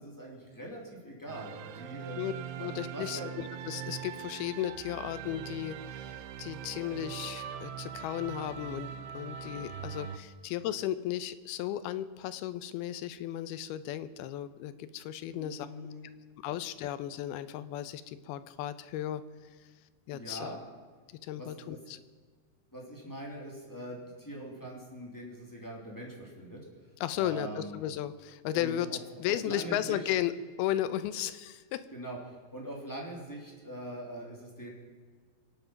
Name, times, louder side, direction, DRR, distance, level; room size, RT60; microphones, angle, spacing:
voice 1, 0.0-2.2 2.6-3.3 15.3-16.1 20.1-20.6 21.4-21.8 22.7-26.6 27.1-27.8 28.5-30.1 31.9-34.7, right 1 dB, 5° left, -2 dB, 2.2 m, -43 dB
sound 1, 1.3-10.2, right 8 dB, 85° right, 2.6 m, -42 dB
voice 2, 2.6-15.7 16.4-19.2 20.1-20.6 21.2-22.0 27.0-28.9 29.2-30.3 30.6-31.9, left 12 dB, 80° left, 13 dB, 2.6 m, -35 dB
24.0 x 9.1 x 5.8 m, 1.5 s
omnidirectional pair, 4.6 m